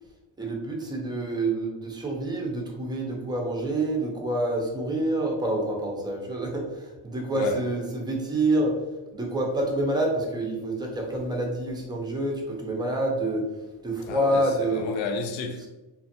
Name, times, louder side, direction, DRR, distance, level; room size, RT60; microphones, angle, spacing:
voice 1, 0.4-8.8 9.1-13.4 13.8-14.9, right 1 dB, 10° right, 0.5 m, -27 dB
voice 2, 14.1-15.7, left 4 dB, 75° left, 0.6 m, -32 dB
2.5 x 2.4 x 2.6 m
cardioid pair, 110°, 46 cm